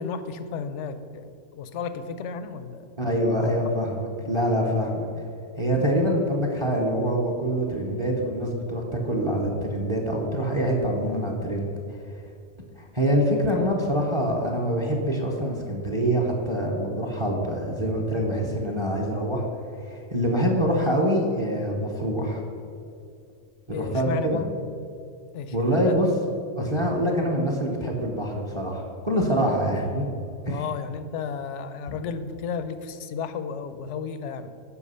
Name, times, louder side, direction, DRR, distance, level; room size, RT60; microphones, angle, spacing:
voice 1, 0.0-2.8 3.4-3.5 3.8-3.9 13.5-13.6 23.7-24.5 25.3-26.0 30.5-34.5, left 6 dB, 75° left, 11 dB, 0.9 m, -33 dB
voice 2, 3.0-5.1 5.6-12.0 12.9-19.4 19.8-22.4 23.7-24.4 25.5-26.1 26.6-30.1 30.5-30.6 31.9-32.0, equal, 25° right, 1 dB, 0.9 m, -25 dB
8.5 x 5.8 x 5.5 m, 2.4 s
omnidirectional pair, 1.3 m